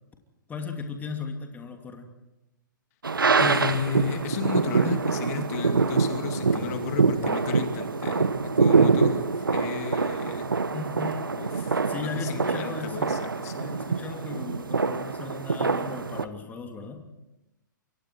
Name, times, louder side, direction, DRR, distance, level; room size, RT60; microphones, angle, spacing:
voice 1, 0.5-2.1 6.4-7.1 10.7-11.4 11.9-13.2 13.5-17.1, left 4 dB, 15° left, 4 dB, 2.8 m, -37 dB
sound 1, 3.0-16.3, right 4 dB, 90° right, 1.3 m, -25 dB
voice 2, 3.4-10.5 11.4-13.7, left 9 dB, 50° left, 6 dB, 2.5 m, -34 dB
28.0 x 24.5 x 4.6 m, 0.95 s
hypercardioid pair, 120°, 11 cm